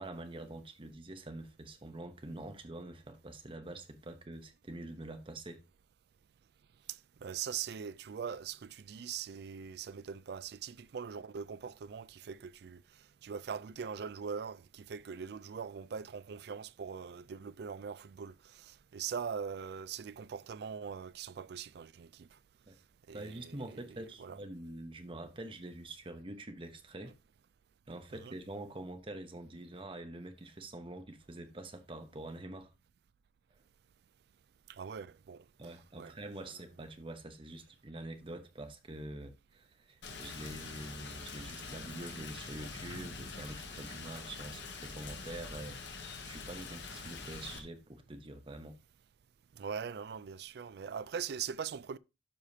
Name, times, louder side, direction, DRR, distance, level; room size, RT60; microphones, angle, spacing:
voice 1, 0.0-5.6 22.7-22.8 23.1-27.1 27.9-32.7 35.6-48.8, right 1 dB, 30° right, 0.9 m, -46 dB
voice 2, 6.9-12.8 13.2-22.3 23.1-24.4 28.2-28.3 34.7-35.4 36.0-36.1 49.5-52.0, right 7 dB, 65° right, 0.4 m, -42 dB
Rain, 40.0-47.6, left 4 dB, 75° left, 1.4 m, -45 dB
12.0 x 5.0 x 2.8 m
head